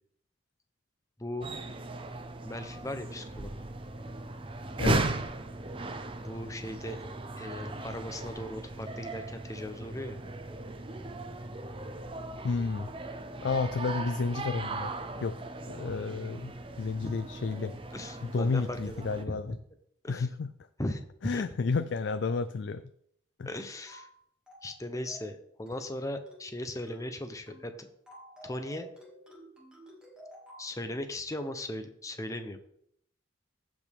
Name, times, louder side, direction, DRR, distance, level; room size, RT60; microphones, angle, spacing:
voice 1, 1.2-1.5 2.4-3.5 6.2-7.0 7.4-10.2 17.0-17.1 17.9-19.0 19.3-19.4 20.0-20.3 20.8-21.0 21.3-21.4 23.5-24.1 24.6-27.9 28.4-28.9 30.6-32.6, left 1 dB, 15° left, 7 dB, 0.8 m, -38 dB
sound 1, 1.4-19.2, right 2 dB, 25° right, 0.5 m, -37 dB
voice 2, 4.8-5.2 12.4-12.9 13.4-14.9 15.2-15.4 15.7-17.7 18.2-19.6 20.1-20.5 21.2-22.8 23.4-23.5, left 4 dB, 60° left, 11 dB, 0.4 m, -31 dB
sound 2, 23.9-24.1 24.5-24.7 25.1-25.4 25.7-25.9 26.3-26.5 26.9-27.1 27.5-27.7 28.1-30.7, equal, 5° right, 2.2 m, -51 dB
15.0 x 5.2 x 3.6 m, 0.70 s
head